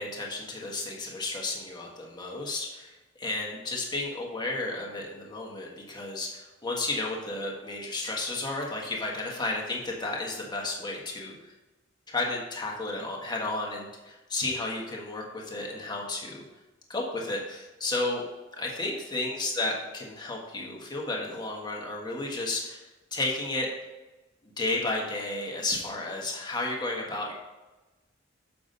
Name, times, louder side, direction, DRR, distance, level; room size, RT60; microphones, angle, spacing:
voice 1, 0.0-2.9 3.2-11.3 12.1-16.4 16.9-18.2 18.5-22.8 23.1-23.7 24.6-27.3, left 2 dB, 20° left, -2 dB, 1.5 m, -32 dB
7.2 x 6.0 x 4.0 m, 1.1 s
head